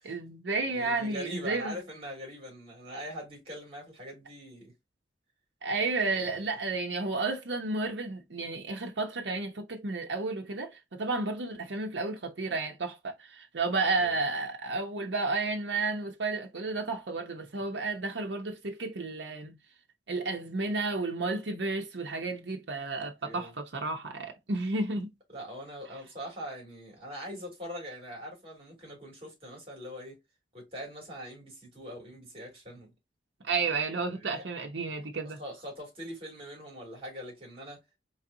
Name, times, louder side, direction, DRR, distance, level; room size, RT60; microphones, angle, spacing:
voice 1, 0.0-1.7 5.6-19.6 20.1-25.1 33.4-35.4, right 3 dB, 75° right, 0.8 m, -32 dB
voice 2, 0.7-4.7 5.8-6.3 14.0-14.1 22.9-23.5 25.3-30.2 30.5-32.9 33.9-34.4 35.4-37.8, equal, 30° right, 2.6 m, -42 dB
4.1 x 3.4 x 2.7 m
head